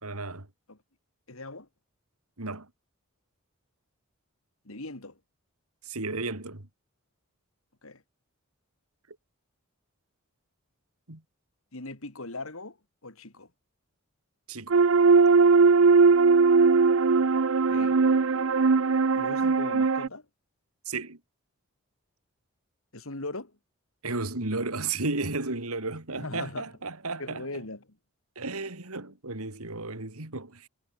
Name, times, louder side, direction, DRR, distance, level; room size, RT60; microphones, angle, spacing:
voice 1, 0.0-0.5 2.4-2.7 5.8-6.7 11.1-11.2 14.5-14.8 20.9-21.2 24.0-27.6 28.4-30.7, right 3 dB, 85° right, 2.9 m, -33 dB
voice 2, 1.3-1.7 4.6-5.2 7.8-8.0 11.7-12.8 13.0-13.5 17.7-17.9 19.1-20.3 22.9-23.5 26.1-26.7 27.2-27.9, left 2 dB, 70° left, 2.8 m, -39 dB
sound 1, 14.7-20.1, right 4 dB, 65° right, 0.6 m, -20 dB
head